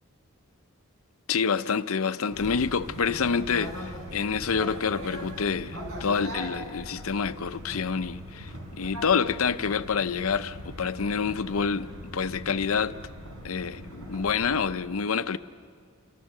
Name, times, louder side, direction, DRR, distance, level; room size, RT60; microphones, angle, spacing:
voice 1, 1.3-11.9 12.1-13.0 13.4-15.4, left 6 dB, 75° left, 0.6 m, -27 dB
sound 1, 2.3-14.7, equal, 80° right, 4.4 m, -40 dB
28.0 x 23.0 x 6.6 m
head